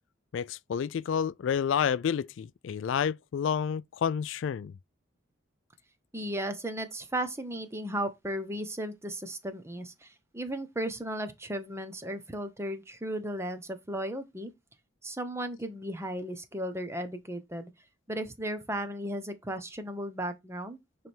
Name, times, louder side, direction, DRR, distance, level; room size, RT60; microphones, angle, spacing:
voice 1, 0.3-4.7, left 7 dB, 70° left, 0.3 m, -29 dB
voice 2, 6.1-14.5 15.0-17.7 18.1-20.8, right 1 dB, 15° right, 0.9 m, -35 dB
9.2 x 3.4 x 4.4 m
head